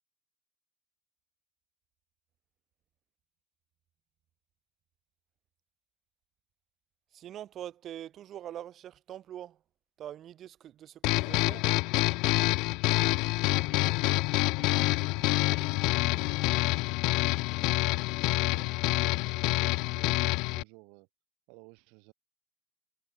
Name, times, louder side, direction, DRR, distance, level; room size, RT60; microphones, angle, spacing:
voice 1, 7.1-9.6 10.0-11.7, right 11 dB, 30° right, 7.0 m, -43 dB
sound 1, 11.0-20.6, left 24 dB, 50° left, 1.1 m, -27 dB
voice 2, 13.0-16.7 17.3-21.1 21.5-22.1, right 35 dB, 55° right, 6.0 m, -55 dB
cardioid pair, 175°, 0 cm